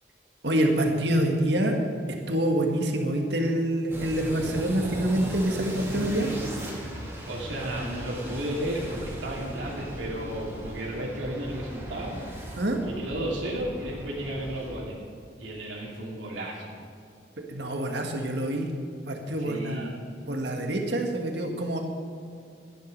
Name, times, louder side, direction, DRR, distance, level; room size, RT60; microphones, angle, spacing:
voice 1, 0.4-1.8 2.3-6.3 12.6-12.8 17.5-18.7 19.1-21.8, right 1 dB, 65° right, 2 dB, 1.7 m, -26 dB
sound 1, 3.9-14.7, right 1 dB, 15° right, 2.4 m, -38 dB
voice 2, 7.3-12.2 12.9-15.0 15.4-16.7 19.4-19.9, right 1 dB, 90° right, -4 dB, 2.9 m, -33 dB
14.0 x 10.5 x 5.4 m, 2.4 s
head